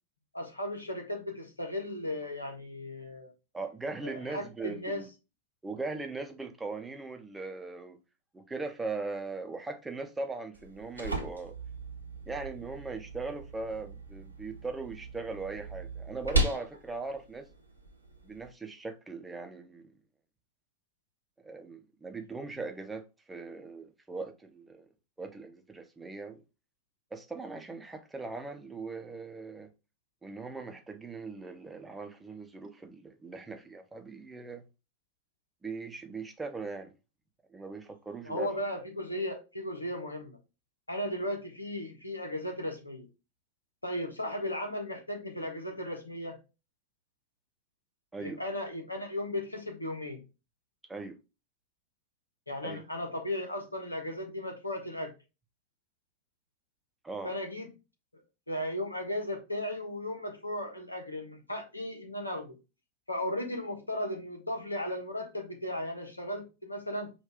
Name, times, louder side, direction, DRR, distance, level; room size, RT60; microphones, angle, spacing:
voice 1, 0.3-3.3 4.0-5.0 38.2-40.4 40.9-43.1 43.8-46.4 48.2-50.2 52.5-55.1 57.2-57.7 58.5-62.6 63.1-67.1, left 1 dB, 85° left, 1.2 m, -36 dB
voice 2, 3.5-5.1 5.6-8.0 8.3-11.5 12.3-17.5 18.2-19.9 21.4-24.9 25.2-26.4 27.1-29.7 30.2-34.6 35.6-36.9 37.5-38.5 48.1-48.4 50.9-51.2 52.6-52.8 57.0-57.3, right 3 dB, 10° right, 0.8 m, -39 dB
sound 1, 10.5-18.5, right 2 dB, 85° right, 1.0 m, -37 dB
5.1 x 2.7 x 3.6 m
figure-of-eight pair, 90°, 0 cm